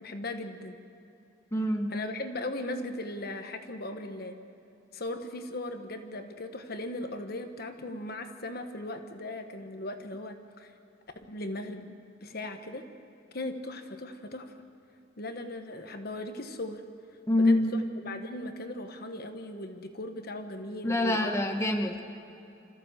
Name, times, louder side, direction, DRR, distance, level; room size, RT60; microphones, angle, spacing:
voice 1, 0.0-0.8 1.9-4.3 4.9-10.7 11.3-12.9 13.3-14.5 15.2-16.8 17.4-21.4, left 1 dB, 55° left, 6 dB, 1.3 m, -38 dB
voice 2, 1.5-1.9 17.3-17.8 20.8-22.0, left 1 dB, 15° left, 3 dB, 1.2 m, -25 dB
26.5 x 14.5 x 7.4 m, 2.8 s
head